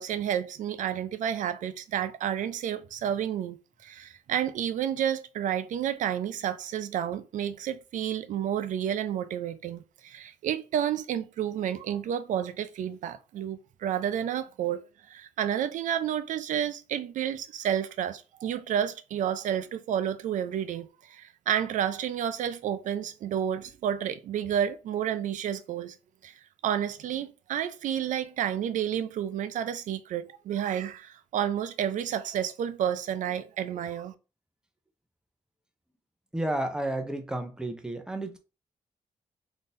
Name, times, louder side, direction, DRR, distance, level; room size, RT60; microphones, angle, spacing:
voice 1, 0.0-26.0 26.2-26.3 26.6-34.1, right 9 dB, 75° right, 0.4 m, -30 dB
voice 2, 36.3-38.4, right 1 dB, 5° right, 0.5 m, -31 dB
3.6 x 2.7 x 2.5 m
cardioid pair, 125°, 13 cm